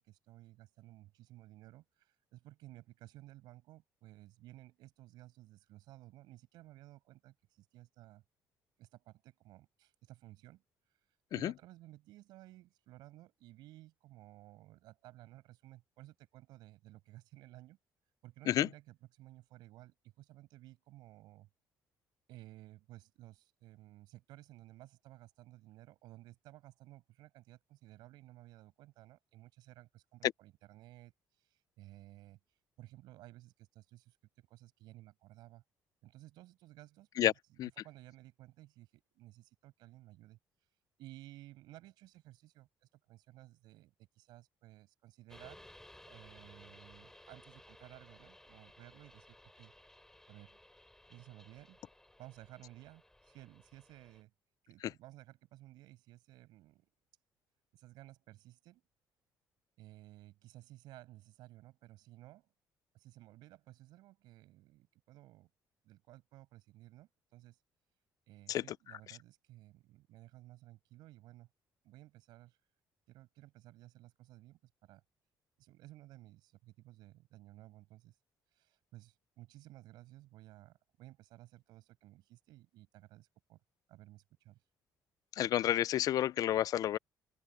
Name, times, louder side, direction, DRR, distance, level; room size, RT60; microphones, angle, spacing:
voice 1, 0.0-8.2 8.8-10.6 11.3-17.8 18.2-21.5 22.3-31.1 31.4-32.4 32.8-35.6 36.0-37.3 37.8-40.4 41.0-45.7 46.1-49.7 50.3-50.6 51.1-51.8 52.2-54.3 54.6-56.9 57.7-58.8 59.8-62.5 62.9-65.5 65.8-67.6 68.3-71.5 71.8-72.6 73.1-75.0 75.6-78.1 78.5-83.6 83.9-84.6, right 16 dB, 90° right, 7.7 m, -56 dB
sound 1, 45.3-54.2, left 1 dB, 5° left, 6.0 m, -59 dB
voice 2, 85.4-87.0, left 12 dB, 55° left, 0.4 m, -29 dB
open air
cardioid pair, 125°, 7 cm